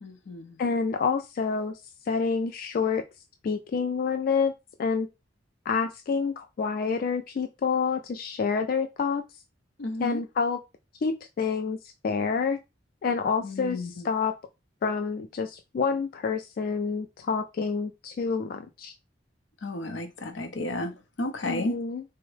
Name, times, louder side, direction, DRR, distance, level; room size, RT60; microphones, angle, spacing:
voice 1, 0.0-0.6 9.8-10.2 13.4-14.1 19.6-21.8, left 2 dB, 90° left, 0.7 m, -33 dB
voice 2, 0.6-1.8 2.1-3.0 3.4-4.5 4.8-5.1 5.7-9.2 10.0-10.6 11.0-11.8 12.0-12.6 13.0-14.3 14.8-18.9 21.4-22.0, left 5 dB, 50° left, 0.3 m, -28 dB
3.5 x 2.1 x 3.2 m
head